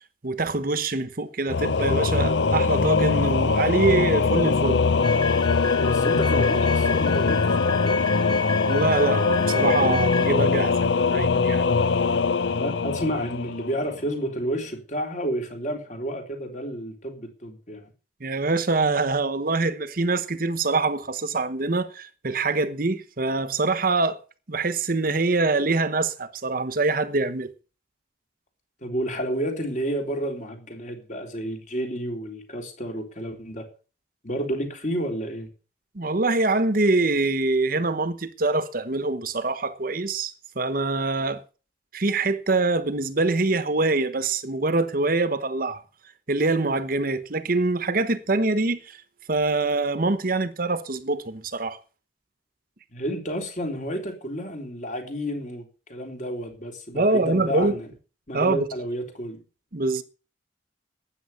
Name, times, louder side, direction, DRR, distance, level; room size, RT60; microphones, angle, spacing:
voice 1, 0.2-4.8 8.7-11.6 18.2-24.2 24.5-27.5 35.9-41.4 41.9-45.8 46.3-49.0 49.3-51.8 56.9-57.7 58.3-58.6 59.7-60.0, right 3 dB, 50° right, 1.0 m, -24 dB
Singing / Musical instrument, 1.5-14.0, left 4 dB, 75° left, 0.6 m, -22 dB
sound 1, 5.0-10.3, left 5 dB, 25° left, 4.4 m, -32 dB
voice 2, 5.9-8.4 12.5-17.9 28.8-33.7 34.2-35.5 52.9-57.9 58.3-59.4, equal, 40° left, 3.7 m, -31 dB
13.0 x 9.3 x 7.0 m
head